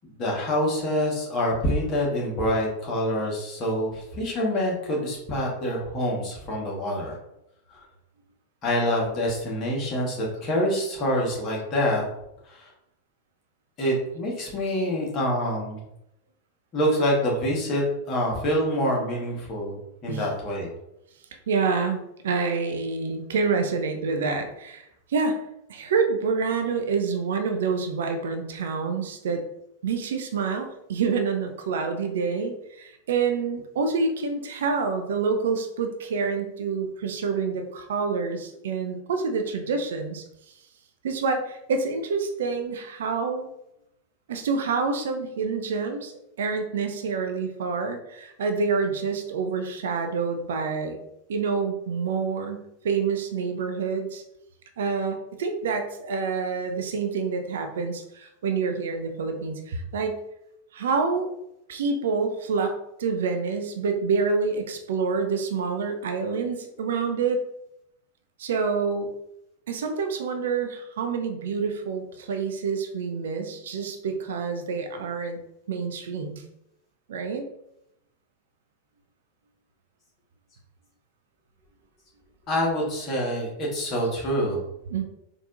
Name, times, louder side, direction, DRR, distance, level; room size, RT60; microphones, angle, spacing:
voice 1, 0.0-7.1 7.7-7.8 8.6-12.0 12.5-12.7 13.8-15.8 16.7-19.8 20.0-20.7 82.5-84.6, equal, 35° left, -3 dB, 1.3 m, -26 dB
voice 2, 21.5-22.0 22.2-25.4 25.7-29.4 29.8-40.2 41.0-43.5 44.3-46.1 46.4-51.0 51.3-54.2 54.8-60.2 60.7-61.3 61.7-67.4 68.4-69.1 69.7-75.4 75.7-76.4 77.1-77.4 84.9-85.0, right 5 dB, 60° right, 6 dB, 0.4 m, -27 dB
4.0 x 2.6 x 2.5 m, 0.83 s
figure-of-eight pair, 90°, 0 cm